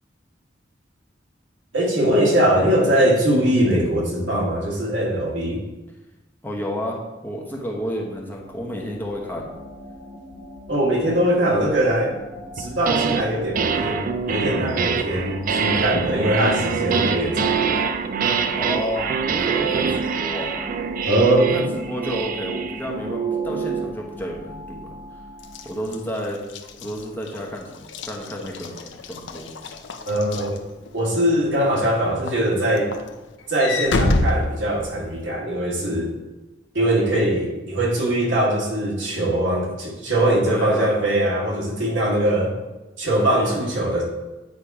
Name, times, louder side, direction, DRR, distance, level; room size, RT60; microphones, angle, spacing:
voice 1, 1.7-5.6 10.7-12.1 12.6-17.6 21.0-21.6 30.1-30.6 30.9-32.9 33.5-36.1 36.7-42.5 43.0-44.0, right 1 dB, 85° right, -3 dB, 1.7 m, -21 dB
voice 2, 6.4-9.5 18.2-20.5 21.5-24.9 25.6-26.4 26.8-29.5 40.2-40.9 43.2-43.6, equal, 10° left, -1 dB, 0.9 m, -31 dB
sound 1, 7.4-26.2, left 1 dB, 45° left, 1.5 m, -40 dB
sound 2, 12.6-13.2 13.5-24.0, right 6 dB, 45° right, 0.4 m, -25 dB
Walk footsteps / Slam, 25.4-31.2 31.7-31.9 32.3-35.3, left 2 dB, 75° left, 0.5 m, -28 dB
8.4 x 2.9 x 4.8 m, 1.1 s
head